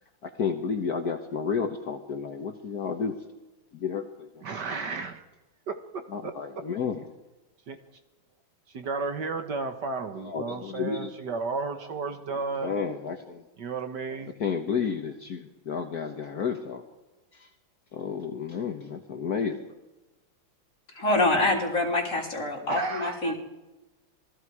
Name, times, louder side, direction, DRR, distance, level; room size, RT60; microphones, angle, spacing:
voice 1, 0.2-3.2 3.7-4.5 6.1-7.1 10.2-11.1 12.6-13.4 14.4-16.8 17.3-17.5 17.9-19.6, left 6 dB, 55° left, 4 dB, 1.6 m, -31 dB
voice 2, 4.4-5.3 5.7-6.3 7.7-7.8 8.7-12.7 13.6-14.4 22.7-23.3, right 4 dB, 60° right, 7 dB, 1.9 m, -33 dB
voice 3, 21.0-23.3, left 2 dB, 40° left, -1 dB, 4.1 m, -25 dB
27.0 x 19.5 x 4.9 m, 1.1 s
omnidirectional pair, 2.2 m